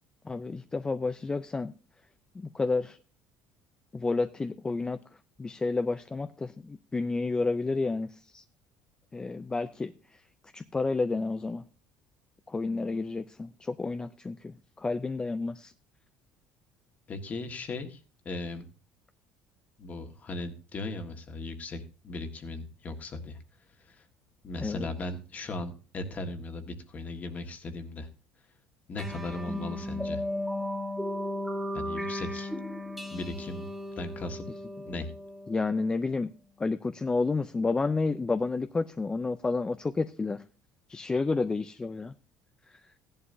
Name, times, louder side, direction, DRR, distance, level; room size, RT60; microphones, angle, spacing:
voice 1, 0.2-1.7 2.3-3.0 3.9-5.0 5.4-8.4 9.1-10.2 10.5-11.6 12.5-15.7 24.6-24.9 35.5-36.3 36.6-40.4 40.9-42.1 42.7-42.8, left 3 dB, 15° left, 10 dB, 0.5 m, -30 dB
voice 2, 17.1-18.7 19.8-23.4 23.8-24.1 24.4-28.1 28.9-30.2 31.7-32.5 33.1-33.7 34.0-34.4 34.8-35.1, left 2 dB, 35° left, 6 dB, 1.6 m, -37 dB
sound 1, 29.0-35.8, left 1 dB, ahead, 1.3 m, -35 dB
15.5 x 11.0 x 2.7 m, 0.35 s
cardioid pair, 115°, 5 cm